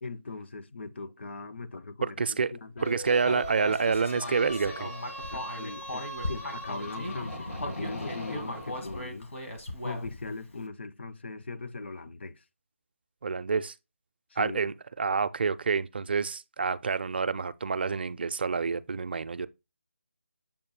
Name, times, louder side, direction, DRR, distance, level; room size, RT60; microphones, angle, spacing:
voice 1, 0.0-2.9 5.3-9.3 9.8-12.4 14.3-14.6, left 3 dB, 55° left, 0.6 m, -40 dB
voice 2, 2.0-2.5 2.8-4.9 13.2-13.7 14.4-19.5, right 5 dB, 45° right, 0.4 m, -28 dB
sound 1, 2.8-9.0, right 1 dB, 85° left, 2.2 m, -40 dB
Human voice, 3.2-7.1 7.6-10.3, left 1 dB, 70° left, 1.7 m, -38 dB
7.1 x 2.6 x 5.2 m
figure-of-eight pair, 160°, 7 cm